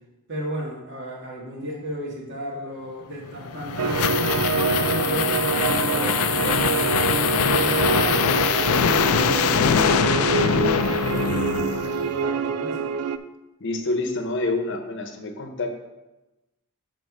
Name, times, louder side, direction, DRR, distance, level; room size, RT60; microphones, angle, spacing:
voice 1, 0.3-7.0 7.5-12.9, right 1 dB, 55° right, -3 dB, 2.0 m, -34 dB
sound 1, 3.3-12.1, left 7 dB, 75° left, 0.4 m, -23 dB
sound 2, 3.8-13.2, right 6 dB, 90° right, 0.4 m, -26 dB
voice 2, 13.6-15.7, left 2 dB, 55° left, 5 dB, 0.9 m, -27 dB
6.4 x 4.5 x 6.0 m, 1.0 s
head